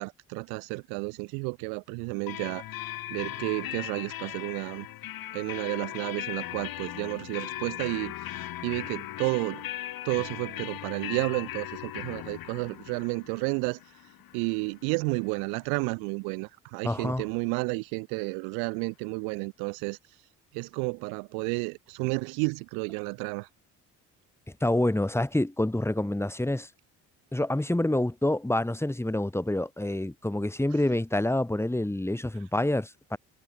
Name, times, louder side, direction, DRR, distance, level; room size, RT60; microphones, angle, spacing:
voice 1, 0.0-2.6 3.1-4.9 5.3-9.6 10.0-13.8 14.3-20.0 20.5-23.5, right 37 dB, 90° right, 1.8 m, -31 dB
sound 1, 2.3-15.8, left 14 dB, 70° left, 4.2 m, -39 dB
voice 2, 16.8-17.2 24.6-26.7 27.3-33.2, left 1 dB, 5° left, 1.8 m, -27 dB
supercardioid pair, 65°, 36 cm